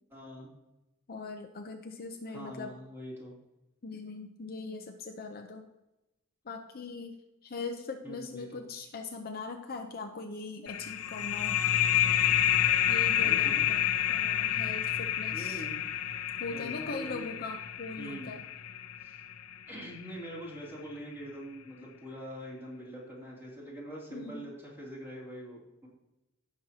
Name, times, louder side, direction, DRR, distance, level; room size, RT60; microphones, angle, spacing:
voice 1, 0.1-0.5 2.3-3.3 8.0-8.6 13.2-13.7 14.7-14.8 15.3-15.9 16.5-17.3 18.0-18.3 19.0-19.2 19.7-25.9, equal, 10° right, -4 dB, 3.0 m, -44 dB
voice 2, 1.1-2.7 3.8-5.7 6.4-7.2 7.4-11.6 12.9-15.6 16.4-18.4 24.1-24.5, left 3 dB, 45° left, 4 dB, 0.7 m, -41 dB
sound 1, 10.7-20.0, left 11 dB, 75° left, 0.7 m, -29 dB
16.5 x 6.3 x 2.9 m, 0.97 s
head